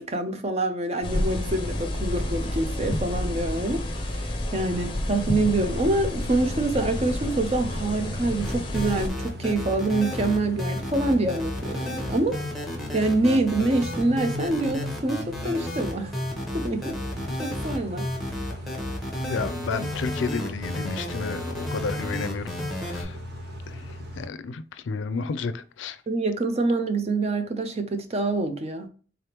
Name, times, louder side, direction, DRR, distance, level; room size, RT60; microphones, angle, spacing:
voice 1, 0.0-12.4 12.9-16.1 16.5-17.0 17.4-18.0 26.1-28.9, right 2 dB, 35° right, 0.5 m, -26 dB
sound 1, 1.0-9.1, left 1 dB, 25° left, 0.6 m, -30 dB
Car / Idling / Accelerating revving vroom, 5.2-24.3, equal, 55° right, 0.9 m, -38 dB
sound 2, 8.4-23.0, left 1 dB, ahead, 1.0 m, -32 dB
voice 2, 19.3-22.5 22.8-23.2 23.7-26.0, left 4 dB, 90° left, 0.4 m, -32 dB
3.8 x 3.4 x 2.9 m
head